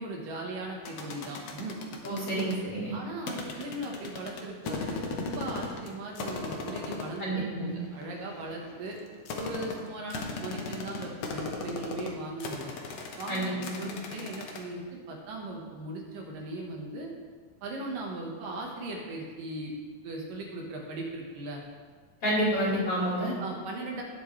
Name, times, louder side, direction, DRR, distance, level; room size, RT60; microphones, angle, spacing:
voice 1, 0.0-1.8 2.9-9.0 9.4-12.7 13.2-14.8 15.1-17.1 17.6-19.8 20.0-21.6 23.4-24.0, right 2 dB, 65° right, -1 dB, 3.0 m, -38 dB
sound 1, 0.9-2.6 3.3-5.9 6.2-7.2 7.8-14.6, left 4 dB, 65° left, 1.7 m, -37 dB
voice 2, 2.0-3.0 7.2-7.7 13.3-14.0 22.2-23.3, right 1 dB, 40° left, -7 dB, 3.7 m, -29 dB
18.0 x 7.9 x 3.3 m, 1.5 s
omnidirectional pair, 4.3 m